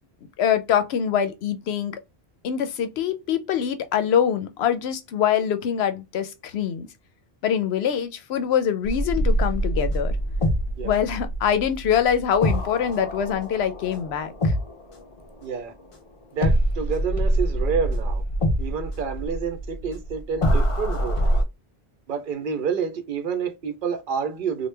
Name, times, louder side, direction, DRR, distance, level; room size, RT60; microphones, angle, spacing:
voice 1, 0.4-2.0 2.4-6.9 7.4-10.1 10.8-14.5, left 8 dB, 80° left, 0.8 m, -24 dB
sound 1, 8.8-15.9 16.4-21.4, equal, 40° left, 0.6 m, -25 dB
voice 2, 15.4-15.7 16.3-18.2 18.6-21.2 22.1-24.7, right 6 dB, 60° right, 0.7 m, -28 dB
3.0 x 2.1 x 3.2 m
omnidirectional pair, 1.1 m